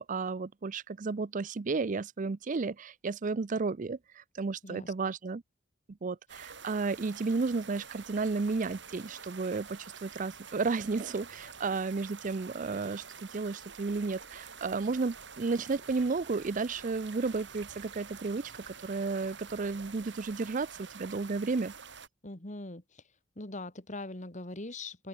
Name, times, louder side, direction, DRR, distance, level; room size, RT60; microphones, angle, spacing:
voice 1, 0.0-5.4 6.0-13.0 13.3-21.7, right 4 dB, 40° right, 0.5 m, -33 dB
sound 1, 6.3-22.1, right 6 dB, 65° right, 7.9 m, -48 dB
voice 2, 22.2-23.0 23.4-25.1, left 2 dB, 40° left, 2.4 m, -41 dB
open air
head